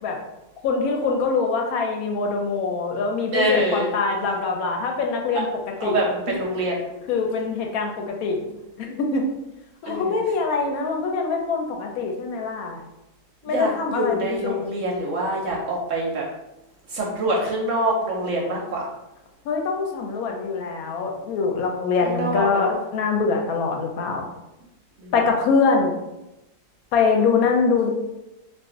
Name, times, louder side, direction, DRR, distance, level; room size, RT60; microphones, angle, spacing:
voice 1, 0.6-5.5 5.8-6.0 7.1-8.4 8.8-9.2 9.8-12.8 13.4-14.7 19.4-24.3 25.1-26.0 26.9-27.9, left 4 dB, 70° left, 2 dB, 1.0 m, -23 dB
voice 2, 3.3-3.9 5.8-6.9 9.9-10.2 13.5-16.2 16.9-18.8 22.0-22.7 25.0-25.1, right 1 dB, 65° right, -2 dB, 0.8 m, -25 dB
2.4 x 2.4 x 3.6 m, 0.95 s
omnidirectional pair, 1.7 m